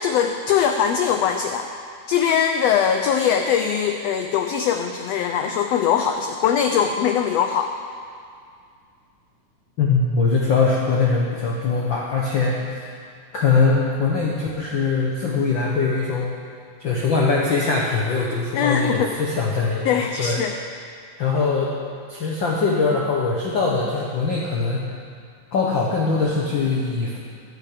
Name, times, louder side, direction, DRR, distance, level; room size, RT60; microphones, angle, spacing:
voice 1, 0.0-1.7 2.1-7.7 18.5-19.2 19.8-20.5, left 8 dB, 85° left, 6 dB, 1.4 m, -21 dB
voice 2, 9.8-12.8 13.3-16.3 16.8-20.4 21.2-21.7 22.1-24.9 25.5-27.2, left 4 dB, 55° left, -2 dB, 1.4 m, -22 dB
14.5 x 12.0 x 5.0 m, 2.2 s
omnidirectional pair, 3.6 m